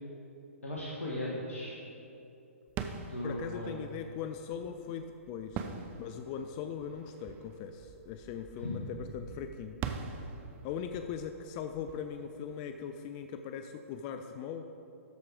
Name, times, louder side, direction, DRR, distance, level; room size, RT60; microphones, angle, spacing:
voice 1, 0.6-1.8 3.0-3.9 8.6-8.8, left 1 dB, 75° left, -4 dB, 1.4 m, -37 dB
sound 1, 2.7-13.3, right 6 dB, 25° right, 0.5 m, -44 dB
voice 2, 3.2-5.7 6.0-9.8 10.6-14.7, left 8 dB, 30° left, 7 dB, 0.4 m, -40 dB
13.0 x 4.8 x 5.0 m, 2.9 s
figure-of-eight pair, 120°, 8 cm